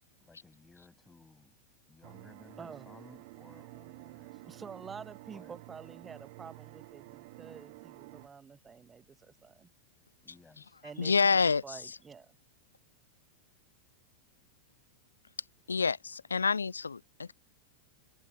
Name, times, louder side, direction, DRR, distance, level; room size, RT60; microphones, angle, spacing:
voice 1, 0.2-1.6 1.9-4.7 5.3-5.6 10.2-10.8, left 3 dB, 10° left, 8.0 m, -58 dB
sound 1, 2.0-8.3, right 24 dB, 50° right, 0.7 m, -50 dB
voice 2, 2.6-2.9 4.5-9.7 10.8-12.3, right 6 dB, 20° right, 1.2 m, -48 dB
voice 3, 11.0-12.0 15.7-17.3, left 5 dB, 75° left, 0.4 m, -28 dB
figure-of-eight pair, 90°, 0 cm